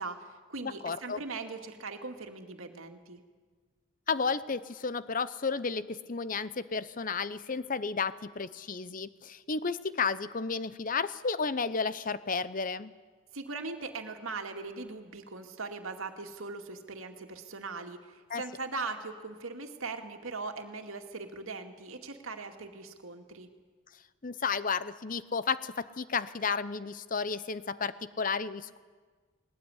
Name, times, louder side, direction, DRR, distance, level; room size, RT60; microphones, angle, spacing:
voice 1, 0.0-3.2 13.3-23.5, right 3 dB, 80° right, 5 dB, 2.2 m, -40 dB
voice 2, 0.6-1.2 4.1-12.9 18.3-18.4 24.2-28.8, left 5 dB, 40° left, 15 dB, 0.7 m, -32 dB
20.0 x 18.5 x 9.8 m, 1.5 s
head